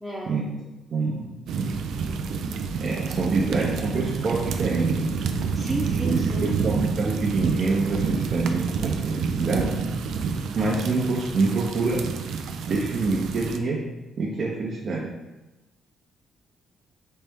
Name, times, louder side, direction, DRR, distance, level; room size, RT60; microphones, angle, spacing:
voice 1, 0.0-0.3 5.5-6.6, right 1 dB, 5° right, -6 dB, 0.8 m, -32 dB
voice 2, 0.9-1.3 2.8-5.2 6.0-9.7 10.6-12.0 12.7-13.8 14.2-15.1, right 3 dB, 50° right, -3 dB, 0.7 m, -26 dB
sound 1, 1.5-13.6, right 5 dB, 80° right, 0.3 m, -28 dB
4.2 x 3.3 x 3.5 m, 1.0 s
cardioid pair, 90°, 0 cm